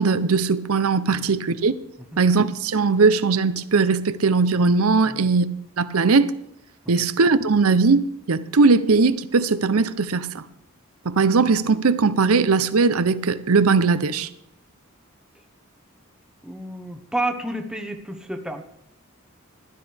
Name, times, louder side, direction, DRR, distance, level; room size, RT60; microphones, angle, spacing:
voice 1, 0.0-1.8 2.2-5.5 5.8-6.3 6.9-10.5 11.0-14.3, right 4 dB, 80° right, 0.7 m, -19 dB
voice 2, 16.4-18.6, right 1 dB, 5° right, 1.0 m, -30 dB
16.0 x 12.0 x 3.5 m
head